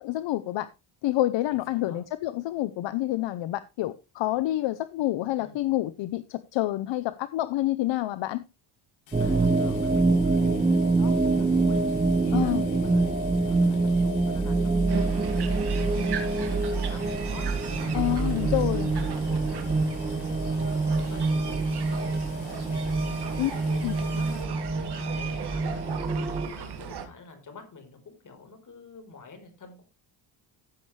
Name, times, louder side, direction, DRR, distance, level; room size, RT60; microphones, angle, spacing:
voice 1, 0.0-0.7 1.0-8.4 12.3-12.6 17.9-18.9 23.4-23.5 23.8-23.9, left 15 dB, 70° left, 0.8 m, -28 dB
voice 2, 1.5-2.0 5.4-5.6 9.2-22.8 23.1-29.8, left 4 dB, 40° left, 4.3 m, -47 dB
sound 1, 9.1-24.4, left 7 dB, 85° left, 3.5 m, -51 dB
sound 2, 9.1-26.5, right 3 dB, 15° right, 1.4 m, -25 dB
sound 3, 14.9-27.1, right 7 dB, 55° right, 2.2 m, -38 dB
15.0 x 7.2 x 3.2 m
cardioid pair, 110°, 46 cm